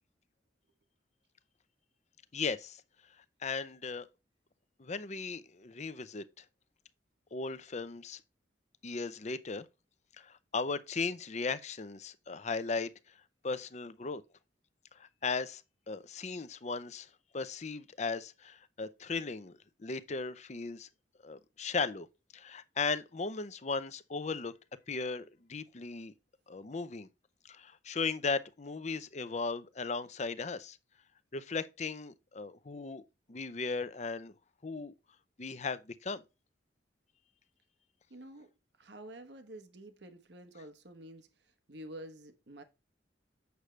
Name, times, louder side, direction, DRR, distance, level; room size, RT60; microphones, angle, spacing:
voice 1, 2.3-2.8 3.4-4.1 4.8-6.2 7.3-8.2 8.8-9.6 10.2-12.9 13.4-14.2 15.0-15.6 15.9-17.1 17.3-19.5 19.8-20.9 21.2-22.1 22.3-24.5 24.9-26.1 26.5-27.1 27.4-30.8 31.3-33.0 33.3-34.3 34.6-34.9 35.4-36.2, left 4 dB, 40° left, 0.6 m, -37 dB
voice 2, 38.1-38.5 38.8-41.3 41.7-42.6, right 1 dB, 70° right, 1.1 m, -49 dB
8.1 x 6.3 x 3.3 m
head